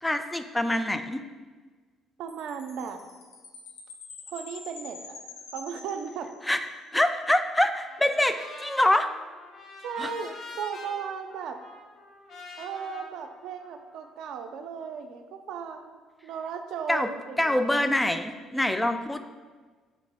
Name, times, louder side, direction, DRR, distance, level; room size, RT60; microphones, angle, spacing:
voice 1, 0.0-1.2 6.5-9.1 10.0-10.1 16.9-17.1 17.4-19.2, left 1 dB, 10° left, 8 dB, 0.3 m, -25 dB
voice 2, 2.2-3.0 4.3-5.2 5.5-6.3 9.8-11.6 12.6-17.9, right 6 dB, 70° right, 6 dB, 0.4 m, -36 dB
Chime, 2.3-6.8, left 4 dB, 85° left, 0.5 m, -46 dB
Trumpet, 7.9-14.1, left 2 dB, 60° left, 0.8 m, -46 dB
3.2 x 2.9 x 4.1 m, 1.4 s
supercardioid pair, 65°, 0 cm